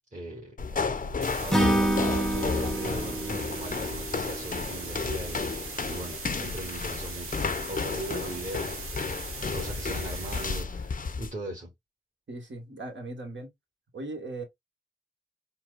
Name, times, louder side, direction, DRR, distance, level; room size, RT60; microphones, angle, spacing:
voice 1, 0.1-0.9 1.4-7.4 7.7-9.1 9.4-11.7, right 1 dB, 35° right, 1.7 m, -39 dB
sound 1, 0.6-11.3, left 4 dB, 40° left, 0.6 m, -32 dB
sound 2, 1.2-10.6, right 4 dB, 90° right, 1.0 m, -40 dB
Acoustic guitar / Strum, 1.5-4.8, right 1 dB, 5° left, 0.7 m, -28 dB
voice 2, 12.3-13.5 13.9-14.4, right 2 dB, 60° right, 1.5 m, -38 dB
4.4 x 2.2 x 2.5 m
cardioid pair, 40°, 21 cm